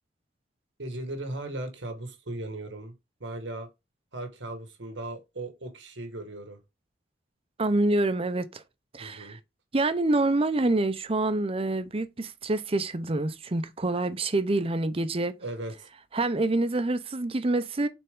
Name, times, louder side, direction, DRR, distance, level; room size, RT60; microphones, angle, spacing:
voice 1, 0.8-2.9 3.2-3.7 4.1-6.6 9.0-9.4 15.4-15.9, right 1 dB, 90° right, 1.7 m, -37 dB
voice 2, 7.6-8.6 8.9-9.4 9.7-15.3 16.1-17.9, right 2 dB, 30° right, 0.7 m, -26 dB
6.8 x 4.5 x 3.7 m
head